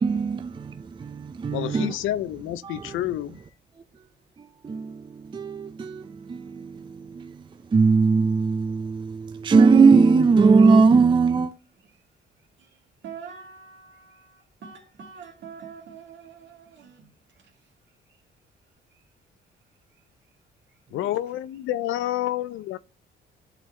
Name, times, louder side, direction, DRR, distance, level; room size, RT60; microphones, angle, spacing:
voice 1, 0.0-1.9 2.7-2.8 4.6-7.4 7.7-11.5, right 4 dB, 25° right, 0.4 m, -20 dB
voice 2, 1.5-3.4 20.9-22.8, left 13 dB, 85° left, 0.5 m, -29 dB
voice 3, 12.6-17.1 17.4-17.5 20.9-21.2, right 6 dB, 65° right, 2.3 m, -45 dB
11.5 x 3.9 x 3.2 m
cardioid pair, 90°, 20 cm